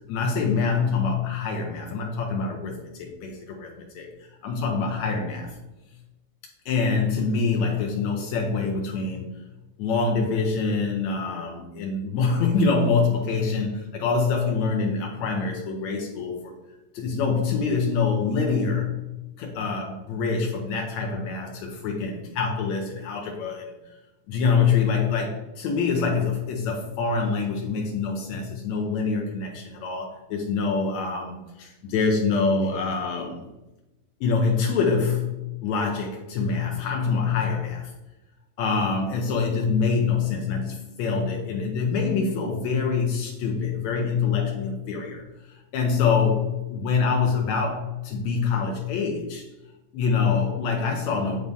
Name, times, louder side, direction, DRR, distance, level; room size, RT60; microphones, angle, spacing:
voice 1, 0.1-5.6 6.7-9.3 9.8-16.5 16.9-18.9 19.4-23.7 24.3-33.5 34.2-35.4 35.6-37.9 38.6-49.5 49.9-51.4, left 5 dB, 75° left, 0 dB, 2.1 m, -25 dB
9.2 x 4.0 x 3.5 m, 1.0 s
omnidirectional pair, 3.3 m